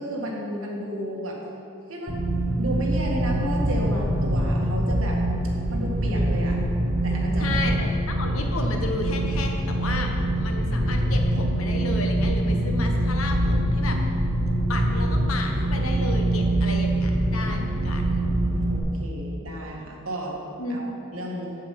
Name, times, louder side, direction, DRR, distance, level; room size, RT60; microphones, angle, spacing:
voice 1, 0.0-1.4 1.9-2.2 2.5-5.2 5.7-6.6 7.0-7.8 18.2-20.4 20.7-21.6, right 1 dB, 70° right, -2 dB, 1.8 m, -33 dB
sound 1, 2.1-18.8, right 1 dB, 35° right, 1.1 m, -24 dB
voice 2, 7.4-10.1 10.4-14.0 14.7-18.2 20.6-20.8 21.1-21.2, left 2 dB, 75° left, 3 dB, 1.1 m, -32 dB
7.9 x 7.5 x 5.8 m, 2.6 s
head